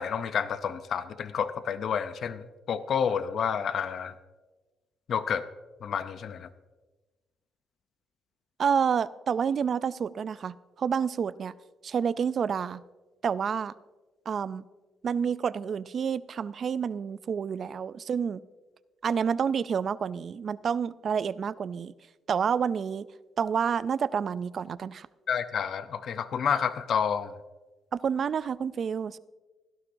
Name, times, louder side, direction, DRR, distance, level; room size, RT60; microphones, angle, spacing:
voice 1, 0.0-4.1 5.1-5.4 5.8-6.5 25.3-27.3, left 7 dB, 60° left, 12 dB, 0.6 m, -29 dB
voice 2, 8.6-11.5 11.8-12.8 13.2-13.7 14.3-14.6 15.0-18.4 19.0-21.9 22.3-23.1 23.4-25.1 27.9-29.2, right 7 dB, 50° right, 17 dB, 0.4 m, -29 dB
16.5 x 11.5 x 2.6 m, 1.2 s
cardioid pair, 90°, 0 cm